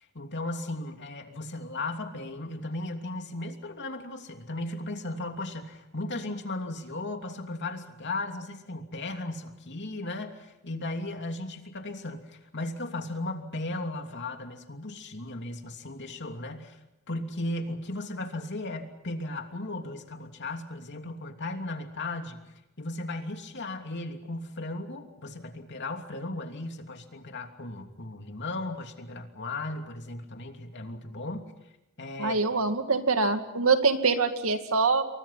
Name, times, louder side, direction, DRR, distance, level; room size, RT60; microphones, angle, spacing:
voice 1, 0.1-16.8 17.1-22.4 22.8-31.5 32.0-32.4, left 2 dB, 55° left, 4 dB, 3.0 m, -36 dB
voice 2, 32.2-35.0, right 4 dB, 75° right, 7 dB, 2.3 m, -24 dB
28.5 x 23.5 x 5.8 m, 0.93 s
head